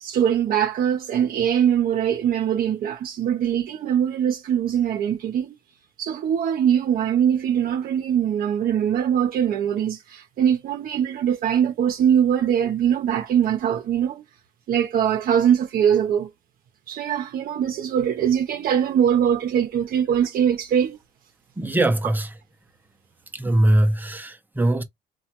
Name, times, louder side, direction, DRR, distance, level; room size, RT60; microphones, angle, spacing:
voice 1, 0.0-5.5 6.0-14.2 14.7-16.3 16.9-21.0, right 9 dB, 60° right, 0.7 m, -22 dB
voice 2, 21.6-22.3 23.3-24.8, right 1 dB, 10° right, 0.7 m, -21 dB
3.1 x 2.3 x 2.9 m
cardioid pair, 110°, 17 cm